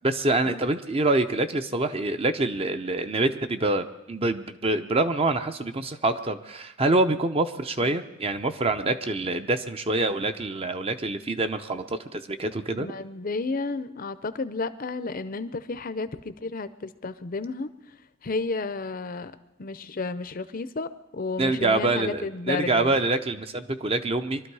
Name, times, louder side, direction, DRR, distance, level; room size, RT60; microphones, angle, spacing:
voice 1, 0.0-12.9 21.4-24.4, right 2 dB, 25° right, 9 dB, 0.6 m, -26 dB
voice 2, 12.8-17.7 18.2-19.3 19.6-22.9, left 3 dB, 40° left, 13 dB, 0.6 m, -32 dB
23.5 x 12.5 x 4.8 m, 0.99 s
head